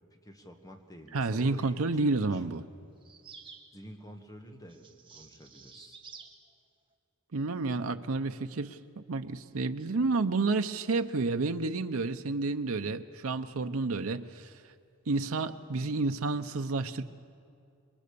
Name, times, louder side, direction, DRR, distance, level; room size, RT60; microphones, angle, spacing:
voice 1, 0.1-2.0 3.7-6.0, equal, 15° left, 5 dB, 1.7 m, -49 dB
voice 2, 1.1-2.6 7.3-14.5 15.1-17.0, right 3 dB, 90° right, 7 dB, 0.7 m, -30 dB
sound 1, 3.0-3.7 4.7-6.4, right 5 dB, 25° right, 1.7 m, -51 dB
27.0 x 22.5 x 6.9 m, 2.4 s
head